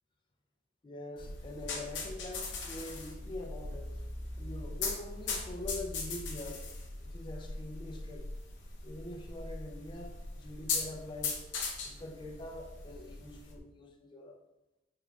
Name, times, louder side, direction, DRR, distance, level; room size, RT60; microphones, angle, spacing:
voice 1, 0.8-4.0 4.4-6.6 7.0-8.3 8.8-11.5 11.8-14.4, left 1 dB, 25° left, 2 dB, 0.4 m, -44 dB
sound 1, 1.2-13.6, left 3 dB, 65° left, 0.7 m, -39 dB
3.7 x 3.2 x 2.3 m, 0.93 s
head